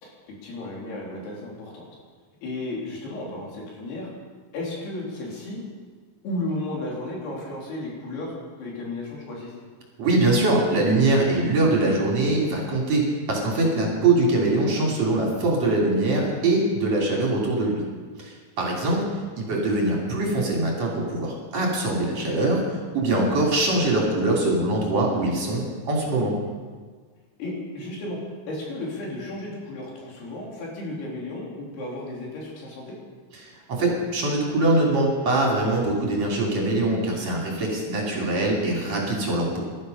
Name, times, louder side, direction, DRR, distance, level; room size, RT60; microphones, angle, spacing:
voice 1, 0.0-1.9 2.4-4.1 4.5-5.6 6.2-9.5 23.8-23.9 27.4-33.0, left 2 dB, 85° left, -3 dB, 5.5 m, -34 dB
voice 2, 10.0-17.8 18.2-19.1 19.4-26.3 33.4-33.5 33.8-39.5, right 2 dB, 45° right, -2 dB, 3.9 m, -23 dB
18.0 x 12.5 x 5.5 m, 1.5 s
omnidirectional pair, 4.5 m